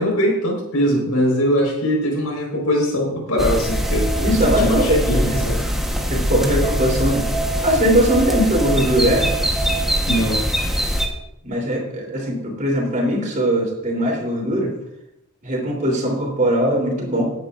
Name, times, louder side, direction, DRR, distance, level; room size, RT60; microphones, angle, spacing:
voice 1, 0.0-4.1 4.5-5.6 10.1-10.4, equal, 85° left, 0 dB, 4.6 m, -21 dB
sound 1, 3.4-11.1, equal, ahead, 1.2 m, -22 dB
voice 2, 4.2-5.4 6.1-7.2 7.6-9.3 11.4-14.7 15.4-17.3, equal, 35° right, -1 dB, 3.5 m, -20 dB
18.0 x 9.5 x 2.6 m, 0.83 s
head